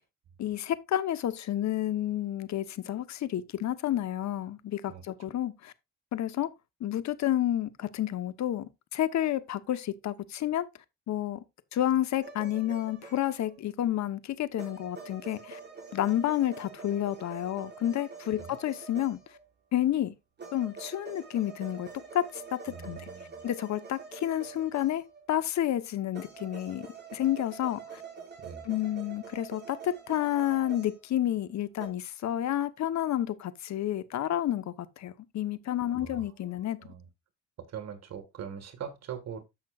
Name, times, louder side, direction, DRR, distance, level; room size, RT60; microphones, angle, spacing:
voice 1, 0.4-5.7 6.1-6.5 6.8-10.6 11.1-11.4 11.7-15.6 15.9-19.2 19.7-20.1 20.5-23.1 23.4-28.0 28.6-36.9, left 12 dB, 65° left, 1.0 m, -30 dB
sound 1, 12.2-13.6 14.6-19.5 20.4-25.3 26.1-31.4 31.8-31.9, right 5 dB, 35° right, 5.3 m, -46 dB
voice 2, 22.7-23.4 28.4-28.7 35.9-36.3 36.8-37.1 37.7-39.4, right 7 dB, 60° right, 1.8 m, -42 dB
14.0 x 6.0 x 2.4 m
cardioid pair, 90°, 30 cm